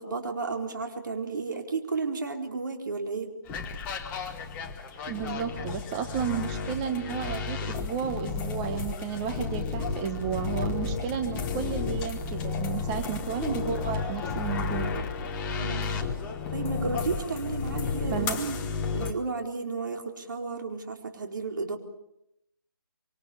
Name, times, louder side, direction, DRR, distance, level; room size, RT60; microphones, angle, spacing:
voice 1, 0.0-3.3 15.6-15.9 16.5-18.6 18.9-21.8, right 4 dB, 60° right, 4 dB, 4.2 m, -33 dB
sound 1, 3.5-19.1, left 4 dB, 10° left, 1.3 m, -32 dB
voice 2, 5.1-14.9 18.1-18.4, right 8 dB, 15° right, 6 dB, 1.1 m, -32 dB
25.5 x 25.5 x 7.1 m, 0.81 s
hypercardioid pair, 165°, 12 cm